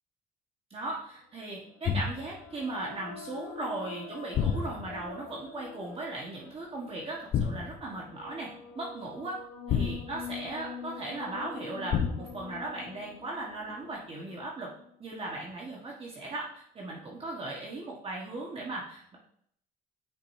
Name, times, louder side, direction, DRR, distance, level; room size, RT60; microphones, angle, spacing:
voice 1, 0.7-9.4 9.7-14.7 15.0-19.2, right 2 dB, 35° right, -3 dB, 1.5 m, -38 dB
sound 1, 1.2-15.4, left 6 dB, 80° left, 1.7 m, -46 dB
sound 2, 1.8-2.4 4.3-5.1 7.3-7.9 9.7-10.5 11.9-12.5, left 7 dB, 50° left, 0.6 m, -30 dB
9.1 x 5.1 x 2.7 m, 0.68 s
cardioid pair, 110°, 17 cm